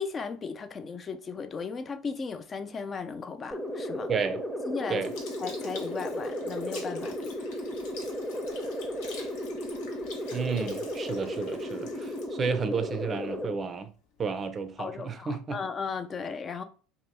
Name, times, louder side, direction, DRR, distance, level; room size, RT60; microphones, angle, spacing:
voice 1, 0.0-4.1 4.7-5.1 5.4-7.3 14.8-16.6, left 5 dB, 35° left, 0.4 m, -36 dB
sound 1, 3.5-13.5, equal, ahead, 0.7 m, -34 dB
voice 2, 4.1-4.4 4.9-5.1 10.3-13.9 14.2-15.6, right 5 dB, 35° right, 0.4 m, -32 dB
Sink (filling or washing) / Liquid, 5.0-13.6 14.2-14.3, left 4 dB, 65° left, 0.7 m, -47 dB
2.8 x 2.2 x 3.4 m
hypercardioid pair, 70°, 0 cm